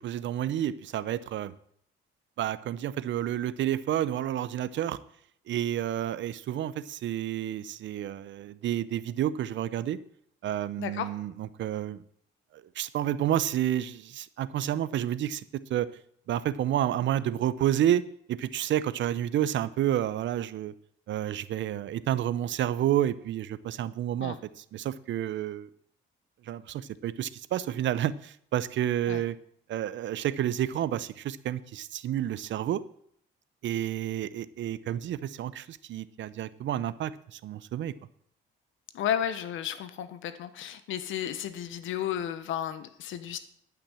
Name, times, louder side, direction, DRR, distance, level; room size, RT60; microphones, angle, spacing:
voice 1, 0.0-1.5 2.4-5.0 5.5-10.0 10.4-12.0 12.5-15.4 15.7-15.9 16.3-18.0 18.3-20.7 21.1-25.7 26.4-29.4 29.7-32.8 33.6-37.9, right 11 dB, 70° right, 16 dB, 0.7 m, -30 dB
voice 2, 38.9-43.4, left 10 dB, 80° left, 12 dB, 1.1 m, -33 dB
11.5 x 6.1 x 7.5 m, 0.66 s
cardioid pair, 90°, 20 cm